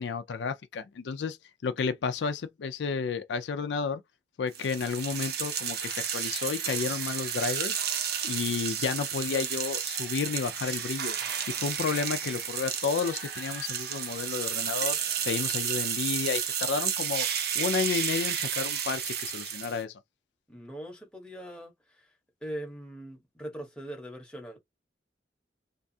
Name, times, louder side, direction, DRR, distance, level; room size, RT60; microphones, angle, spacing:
voice 1, 0.0-1.4 1.6-4.0 4.4-7.8 8.2-11.2 11.5-17.3 17.5-20.0, left 5 dB, 80° left, 0.4 m, -31 dB
sound 1, 4.5-19.8, right 8 dB, 60° right, 0.6 m, -32 dB
voice 2, 20.5-22.1 22.4-24.6, right 1 dB, 5° left, 0.8 m, -41 dB
2.5 x 2.3 x 2.6 m
head